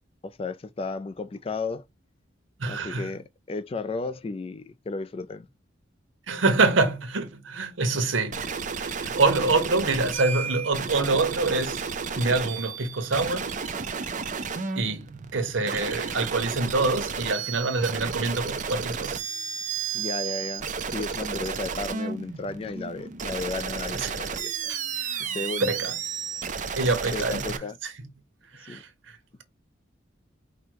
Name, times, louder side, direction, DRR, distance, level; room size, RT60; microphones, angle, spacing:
voice 1, 0.2-1.8 2.7-5.5 19.9-24.7 25.2-25.7 26.6-26.8 27.1-27.8 28.5-28.8, left 3 dB, 30° left, 0.3 m, -34 dB
voice 2, 2.6-3.1 6.3-8.4 8.7-11.8 12.2-13.5 14.8-19.2 24.0-24.1 24.7-25.3 25.7-25.9 26.7-27.6 27.8-27.9 28.5-29.4, right 3 dB, 90° right, 1.0 m, -26 dB
sound 1, 8.3-27.6, right 6 dB, 40° right, 0.5 m, -32 dB
5.1 x 2.1 x 4.6 m
head